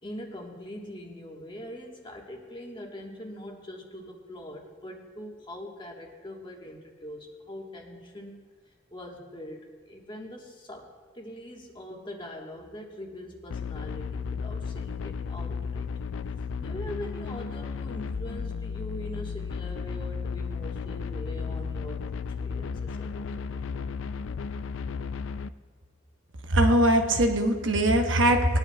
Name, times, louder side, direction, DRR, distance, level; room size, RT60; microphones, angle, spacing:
voice 1, 0.0-8.4 8.9-10.9 11.1-15.9 16.6-22.1 22.4-23.9, equal, 25° left, 0 dB, 1.3 m, -42 dB
sound 1, 13.5-25.5, left 5 dB, 85° left, 0.4 m, -34 dB
voice 2, 26.5-28.6, right 1 dB, 80° right, 4 dB, 1.0 m, -21 dB
20.5 x 10.0 x 2.2 m, 1.5 s
head